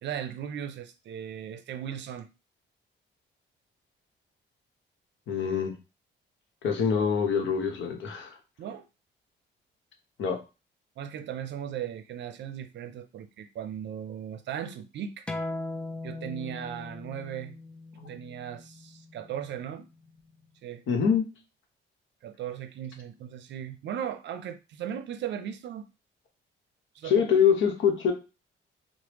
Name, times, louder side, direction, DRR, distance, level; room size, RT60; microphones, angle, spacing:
voice 1, 0.0-2.3 8.6-8.8 11.0-15.3 16.0-17.6 18.1-19.9 20.6-20.8 22.2-25.9 27.0-27.2, right 9 dB, 65° right, 0.5 m, -37 dB
voice 2, 5.3-5.7 6.6-8.4 10.2-10.4 17.9-18.2 20.9-21.2 27.0-28.1, left 7 dB, 75° left, 0.9 m, -25 dB
sound 1, 15.3-20.4, left 2 dB, 5° left, 0.4 m, -40 dB
3.3 x 2.1 x 3.0 m
cardioid pair, 90°, 20 cm